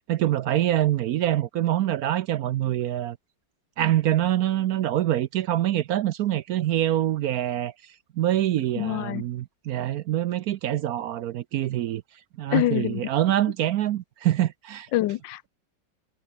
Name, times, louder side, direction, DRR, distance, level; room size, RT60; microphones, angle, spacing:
voice 1, 0.1-3.2 3.8-7.7 8.2-12.0 12.4-14.9, right 13 dB, 70° right, 0.9 m, -25 dB
voice 2, 8.8-9.2 12.5-13.1 14.9-15.5, left 15 dB, 90° left, 1.3 m, -25 dB
omnidirectional pair, 2.0 m